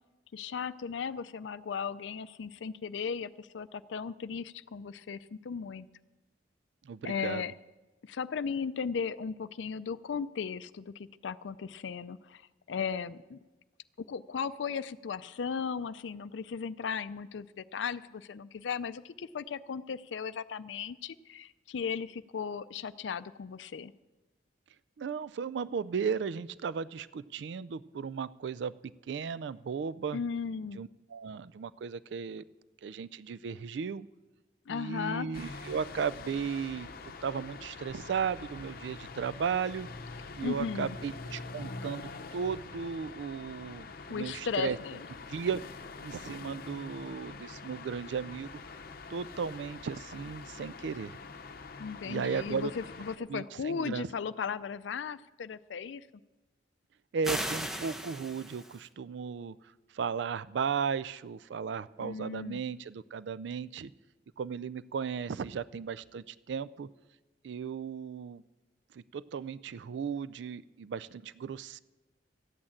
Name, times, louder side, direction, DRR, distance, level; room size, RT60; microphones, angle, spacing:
voice 1, 0.3-5.9 7.0-7.5 8.0-13.4 14.1-23.9 30.1-30.8 34.7-35.3 40.4-41.0 44.1-45.0 51.8-56.1 62.0-62.6, left 6 dB, 85° left, 14 dB, 0.4 m, -36 dB
voice 2, 6.8-7.4 25.0-28.7 29.1-30.2 30.8-32.4 32.8-34.1 34.7-39.9 40.3-44.8 45.3-45.7 46.0-48.5 48.7-48.8 49.1-51.2 52.0-52.7 53.3-54.1 57.1-59.6 59.9-63.9 64.4-66.9 67.4-68.4 68.9-71.8, right 6 dB, 70° right, 17 dB, 0.4 m, -35 dB
sound 1, 35.3-53.2, left 4 dB, 55° left, 0.8 m, -45 dB
sound 2, 57.2-58.8, equal, 5° right, 0.9 m, -36 dB
14.0 x 8.8 x 8.5 m, 1.1 s
head